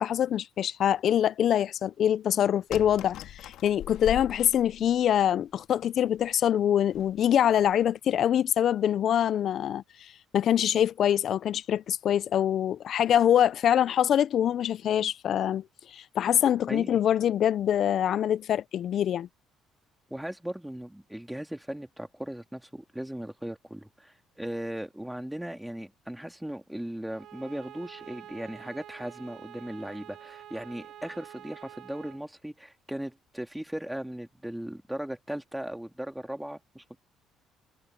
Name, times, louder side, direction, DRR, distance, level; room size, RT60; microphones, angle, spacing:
voice 1, 0.0-9.8 10.3-15.6 15.9-19.3, left 10 dB, 50° left, 0.4 m, -24 dB
sound 1, 2.7-5.2 5.8-5.9 6.2-6.3 6.9-7.2 7.6-7.8, left 12 dB, 70° left, 1.6 m, -41 dB
voice 2, 16.7-17.0 20.1-37.0, right 1 dB, 5° right, 2.9 m, -37 dB
Bowed string instrument, 27.1-32.3, right 11 dB, 55° right, 1.7 m, -47 dB
cardioid pair, 150°, 0 cm